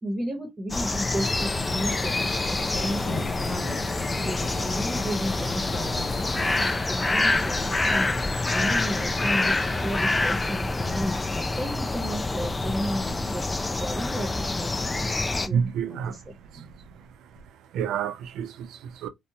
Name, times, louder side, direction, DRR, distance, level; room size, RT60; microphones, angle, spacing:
voice 1, 0.0-3.1 3.4-3.8 4.2-8.1 8.5-11.2 11.6-14.7 15.4-16.7, equal, 30° right, 0.9 m, -33 dB
sound 1, 0.7-15.5, left 2 dB, 20° left, 0.4 m, -27 dB
sound 2, 1.2-6.7, left 3 dB, 50° left, 0.7 m, -36 dB
voice 2, 7.3-7.6 12.7-12.8 13.3-13.4 15.2-16.2 16.5-17.1 17.7-19.1, right 7 dB, 75° right, 0.4 m, -31 dB
2.7 x 2.1 x 2.7 m
supercardioid pair, 75°, 0 cm